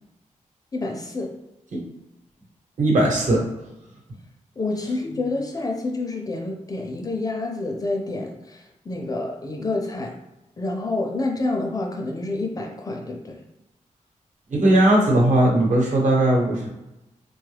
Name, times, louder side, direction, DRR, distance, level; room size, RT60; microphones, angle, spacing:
voice 1, 0.7-1.3 4.6-10.1 10.6-13.4, left 2 dB, 30° left, 2 dB, 0.4 m, -28 dB
voice 2, 2.8-3.4 14.5-16.7, right 1 dB, 70° right, -2 dB, 1.1 m, -18 dB
3.7 x 2.3 x 3.3 m, 0.97 s
wide cardioid pair, 175°, 13 cm